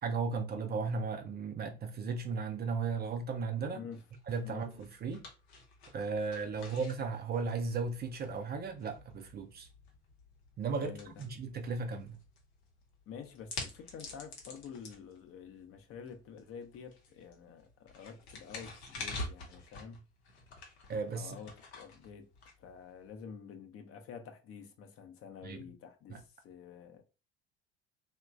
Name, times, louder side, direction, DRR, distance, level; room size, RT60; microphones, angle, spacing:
voice 1, 0.0-3.8 4.3-5.2 5.9-9.7 10.6-10.9 11.2-12.2 20.9-21.4 25.4-25.6 26.1-26.2, right 4 dB, 30° right, 0.4 m, -35 dB
sound 1, 3.9-23.2, left 2 dB, 80° left, 0.8 m, -48 dB
voice 2, 10.8-11.1 13.1-20.0 21.1-22.3 22.6-27.0, left 6 dB, 45° left, 0.6 m, -48 dB
2.9 x 2.2 x 2.4 m
figure-of-eight pair, 55°, 32 cm